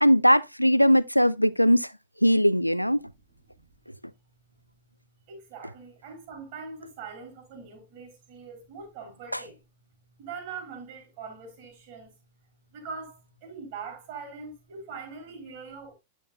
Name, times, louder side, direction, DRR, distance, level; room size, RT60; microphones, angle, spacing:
voice 1, 0.0-1.9 2.2-3.0 9.3-9.4, equal, 90° left, 0.3 m, -20 dB
voice 2, 5.3-9.6 10.2-12.1 12.7-15.9, right 5 dB, 50° right, 3.9 m, -42 dB
9.2 x 7.1 x 2.3 m
figure-of-eight pair, 90°, 0 cm